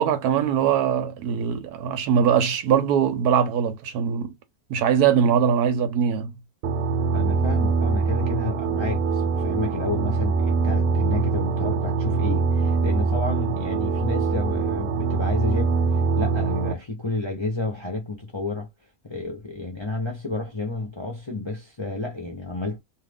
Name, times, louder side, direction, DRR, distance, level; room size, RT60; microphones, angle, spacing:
voice 1, 0.0-4.3 4.7-6.3, right 8 dB, 90° right, 1.2 m, -21 dB
sound 1, 6.6-16.7, right 4 dB, 70° right, 0.9 m, -23 dB
voice 2, 7.1-15.8 16.2-18.7 19.0-22.8, left 2 dB, 30° left, 0.5 m, -30 dB
2.7 x 2.5 x 3.4 m
omnidirectional pair, 1.6 m